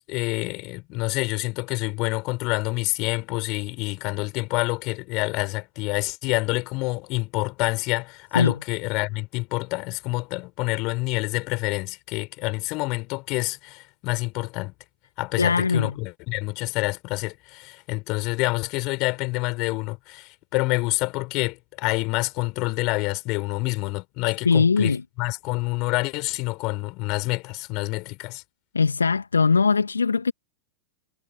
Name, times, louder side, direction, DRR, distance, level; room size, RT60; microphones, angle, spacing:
voice 1, 0.0-14.7 15.2-28.4, left 25 dB, 40° left, 5.1 m, -27 dB
voice 2, 15.4-15.9 24.4-25.0 28.7-30.3, left 5 dB, 75° left, 2.4 m, -20 dB
figure-of-eight pair, 90°, 0 cm